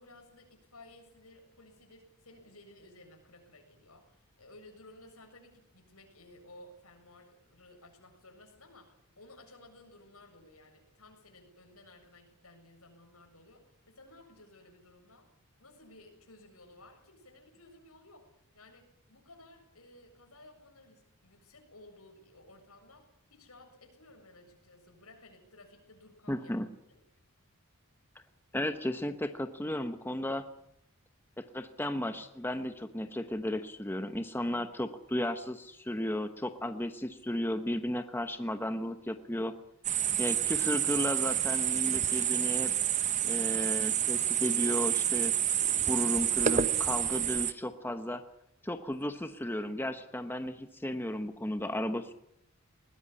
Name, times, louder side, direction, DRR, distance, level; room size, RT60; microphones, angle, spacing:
voice 1, 0.0-15.3 15.6-26.5 26.9-27.0, left 2 dB, 75° left, 4 dB, 7.6 m, -56 dB
voice 2, 26.3-26.7 28.5-30.5 31.4-39.5 40.2-42.7 43.2-45.3 45.8-48.2 48.6-52.1, left 1 dB, 10° left, 8 dB, 1.1 m, -34 dB
sound 1, 39.8-47.5, right 9 dB, 35° right, 1.0 m, -29 dB
21.0 x 20.0 x 9.8 m, 0.76 s
head